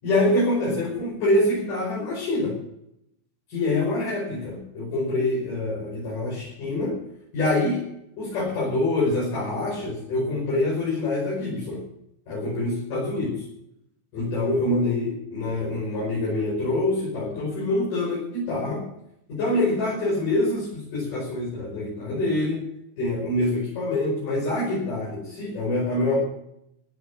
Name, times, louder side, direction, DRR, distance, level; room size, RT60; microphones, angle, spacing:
voice 1, 0.0-2.6 3.5-7.0 7.3-7.9 8.2-11.8 12.3-13.4 14.1-18.9 19.3-22.6 23.0-26.2, left 2 dB, 75° left, -5 dB, 7.1 m, -25 dB
16.5 x 9.6 x 7.3 m, 0.77 s
omnidirectional pair, 3.7 m